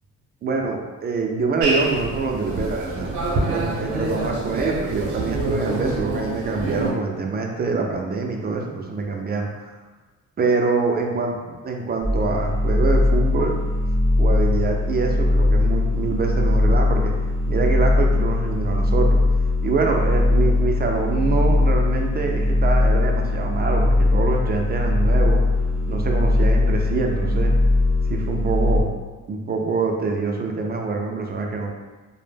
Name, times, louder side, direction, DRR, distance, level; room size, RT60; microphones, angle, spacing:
voice 1, 0.4-9.7 10.4-11.4 11.6-13.6 14.2-17.1 17.5-19.2 19.6-25.4 25.9-27.5 28.1-28.9 29.3-31.7, right 4 dB, 35° right, 1 dB, 0.4 m, -25 dB
sound 1, 1.6-6.9, right 2 dB, 75° right, 0.6 m, -26 dB
sound 2, 12.0-28.8, left 2 dB, 10° left, 0.7 m, -20 dB
2.1 x 2.0 x 3.2 m, 1.3 s
cardioid pair, 90°, 30 cm